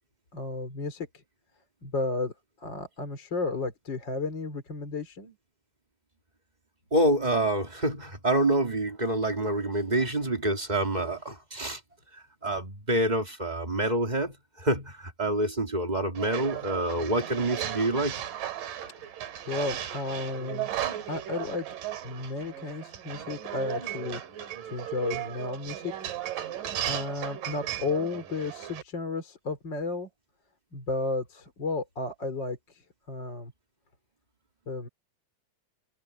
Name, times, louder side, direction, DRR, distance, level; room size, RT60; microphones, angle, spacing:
voice 1, 0.3-1.2 1.8-2.3 2.6-5.4 19.5-20.7 21.1-21.7 22.0-24.2 24.7-26.1 26.9-30.1 30.7-32.8 33.1-33.5 34.7-34.9, left 3 dB, 30° left, 4.1 m, -33 dB
voice 2, 6.9-11.8 12.1-18.2, right 1 dB, 15° right, 2.0 m, -27 dB
sound 1, 16.1-28.8, right 11 dB, 70° right, 3.6 m, -36 dB
omnidirectional pair, 4.0 m